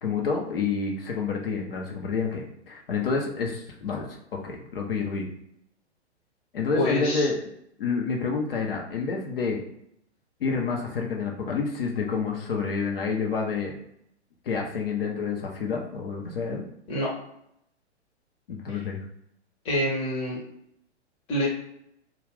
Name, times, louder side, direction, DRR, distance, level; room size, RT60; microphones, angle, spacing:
voice 1, 0.0-4.1 4.4-5.3 6.5-7.4 7.8-9.6 10.4-13.8 14.4-16.6 18.5-19.0, left 5 dB, 55° left, 0 dB, 0.7 m, -28 dB
voice 2, 6.7-7.3 16.9-17.1 18.7-18.8 19.6-20.4 21.3-21.5, equal, 15° left, -3 dB, 0.8 m, -26 dB
2.3 x 2.3 x 3.4 m, 0.75 s
figure-of-eight pair, 115°, 34 cm